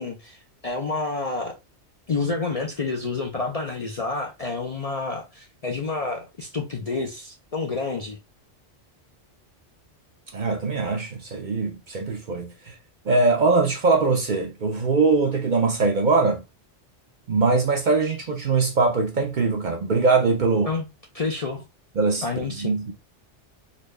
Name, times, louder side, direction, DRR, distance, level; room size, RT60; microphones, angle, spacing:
voice 1, 0.0-1.6 2.1-8.2 20.6-20.9 21.1-21.6 22.2-22.8, left 3 dB, 45° left, 0.5 m, -29 dB
voice 2, 10.3-12.7 13.1-16.4 17.3-20.7 22.0-22.9, right 3 dB, 50° right, 0.6 m, -22 dB
4.1 x 2.2 x 3.1 m
omnidirectional pair, 1.2 m